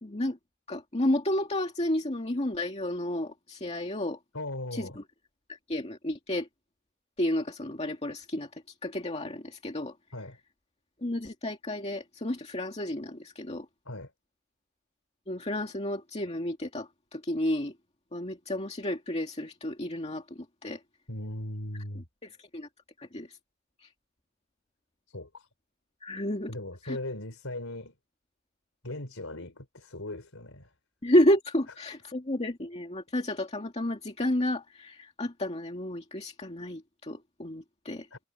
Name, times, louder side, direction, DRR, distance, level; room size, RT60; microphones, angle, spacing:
voice 1, 0.0-0.4 0.7-4.2 4.7-5.0 5.5-6.5 7.2-10.0 11.0-13.7 15.3-17.7 18.1-20.8 22.0-22.7 23.0-23.4 23.8-23.9 26.0-26.5 26.8-27.0 31.0-38.1, left 1 dB, 30° left, 2.2 m, -31 dB
voice 2, 4.3-5.0 10.1-10.4 13.8-14.1 21.1-22.1 25.1-25.5 26.5-27.9 28.8-30.7 38.1-38.2, left 1 dB, 75° left, 4.4 m, -38 dB
head